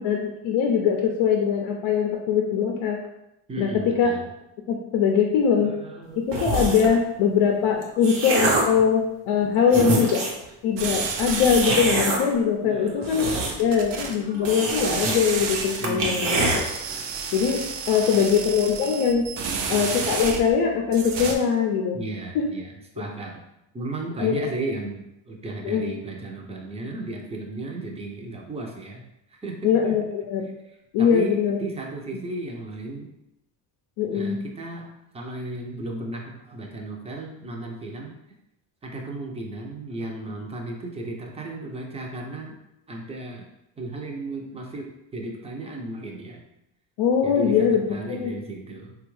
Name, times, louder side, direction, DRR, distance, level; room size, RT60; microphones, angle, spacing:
voice 1, 0.0-3.0 3.6-4.1 4.7-5.8 6.3-10.2 10.6-13.3 13.6-16.6 17.3-19.3 19.7-22.0 22.3-22.5 24.2-24.4 25.6-25.9 29.6-30.5 30.9-31.6 34.0-34.4 47.0-47.8 48.1-48.4, left 7 dB, 75° left, 1 dB, 0.6 m, -22 dB
voice 2, 3.5-4.3 5.6-6.4 9.4-10.3 12.6-15.1 15.8-16.6 17.9-18.1 18.6-19.1 21.9-23.4 23.7-29.6 29.8-29.9 31.0-33.1 34.1-38.1 38.8-42.6 42.9-43.4 43.8-46.4 47.2-49.0, right 2 dB, 15° right, 0 dB, 0.5 m, -35 dB
sound 1, 6.3-7.0 7.6-8.8 9.4-9.5 9.7-10.4 11.4-12.2 12.9-13.8 14.0-14.1 14.4-15.2 15.5-15.6 15.8-16.6, right 2 dB, 85° right, 0.9 m, -25 dB
sound 2, 10.8-11.9 13.1-14.1 14.7-15.8 16.2-20.6 20.9-21.4, right 5 dB, 60° right, 0.6 m, -31 dB
3.3 x 2.4 x 3.1 m, 0.86 s
cardioid pair, 90°, 49 cm